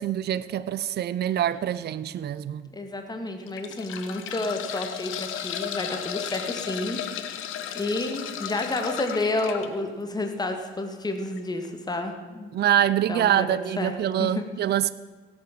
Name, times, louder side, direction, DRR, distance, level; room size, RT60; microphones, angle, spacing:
voice 1, 0.0-2.6 12.5-14.9, right 11 dB, 55° right, 0.5 m, -25 dB
sound 1, 1.3-1.6 2.2-2.3 3.3-9.7 11.3-11.4 11.6-11.7, left 9 dB, 90° left, 1.3 m, -34 dB
voice 2, 2.7-7.0 7.7-12.5 13.1-13.5 13.8-13.9 14.2-14.4, left 2 dB, 20° left, 2.0 m, -30 dB
16.5 x 9.0 x 7.5 m
cardioid pair, 90°, 20 cm